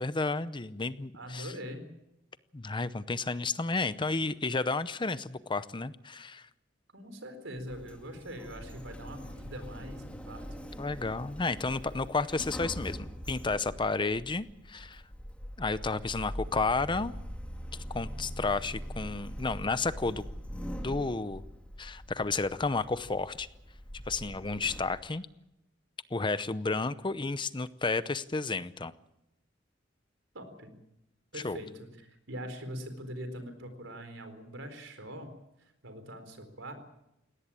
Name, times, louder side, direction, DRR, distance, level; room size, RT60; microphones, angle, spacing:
voice 1, 0.0-1.5 2.5-6.5 10.8-15.0 15.6-17.1 17.9-20.2 20.8-21.4 21.8-23.5 24.1-25.3 26.1-28.9 31.4-31.6, left 3 dB, 25° left, 14 dB, 0.7 m, -32 dB
voice 2, 1.1-1.8 6.9-10.4 30.3-30.7 31.3-36.7, equal, 85° right, 8 dB, 4.2 m, -43 dB
Sliding door, 7.6-25.0, equal, 5° left, 2.3 m, -43 dB
20.0 x 18.0 x 8.9 m, 0.87 s
head